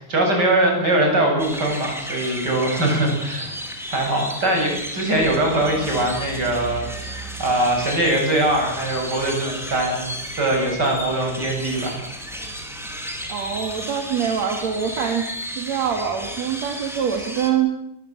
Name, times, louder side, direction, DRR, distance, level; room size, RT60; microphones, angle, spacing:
voice 1, 0.0-3.5 3.9-10.1 10.3-12.0, right 1 dB, 30° right, 1 dB, 8.6 m, -22 dB
sound 1, 1.4-17.5, equal, ahead, 4.3 m, -33 dB
voice 2, 13.3-15.3 15.6-17.7, right 8 dB, 60° right, 4 dB, 3.5 m, -24 dB
22.0 x 21.5 x 9.0 m, 0.80 s
omnidirectional pair, 3.6 m